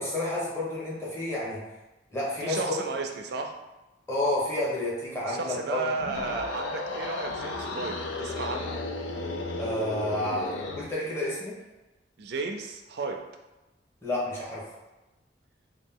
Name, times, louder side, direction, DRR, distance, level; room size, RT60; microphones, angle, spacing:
voice 1, 0.0-1.6 2.1-2.8 4.1-5.8 6.1-6.3 9.6-11.6 14.0-14.7, left 1 dB, 15° left, -8 dB, 1.0 m, -30 dB
voice 2, 2.4-3.5 5.3-8.8 12.2-13.2, right 3 dB, 60° right, 3 dB, 0.4 m, -33 dB
sound 1, 5.9-10.9, left 2 dB, 85° left, 0.4 m, -34 dB
2.9 x 2.3 x 3.6 m, 1.1 s
head